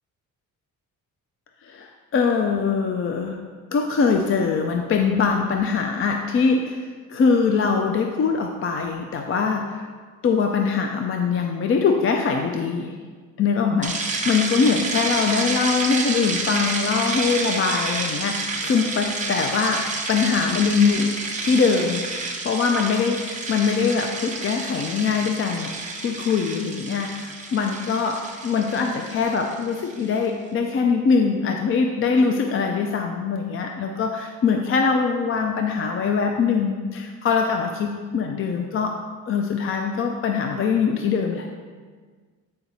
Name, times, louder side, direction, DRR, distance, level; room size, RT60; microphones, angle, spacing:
voice 1, 1.6-3.4 3.7-9.9 10.2-12.9 13.4-21.2 21.4-22.0 22.4-25.7 26.0-39.0 39.3-41.5, left 5 dB, 40° left, 3 dB, 0.4 m, -22 dB
sound 1, 13.8-30.1, right 3 dB, 20° right, 0.8 m, -29 dB
8.6 x 5.0 x 4.1 m, 1.5 s
cardioid pair, 175°, 35 cm